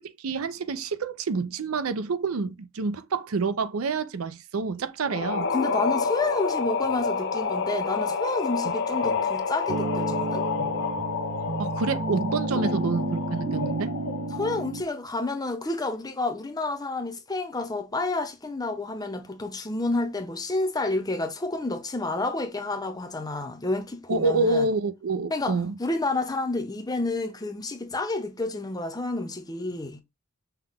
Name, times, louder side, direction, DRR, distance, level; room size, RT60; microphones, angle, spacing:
voice 1, 0.0-5.5 11.6-13.9 24.1-25.7, right 4 dB, 85° right, 0.5 m, -28 dB
sound 1, 5.0-14.8, left 5 dB, 60° left, 0.6 m, -29 dB
voice 2, 5.5-10.4 12.5-12.7 14.3-24.7 25.3-30.0, left 2 dB, 20° left, 0.7 m, -30 dB
sound 2, 9.7-14.8, right 2 dB, 40° right, 0.6 m, -31 dB
5.7 x 2.2 x 3.5 m
head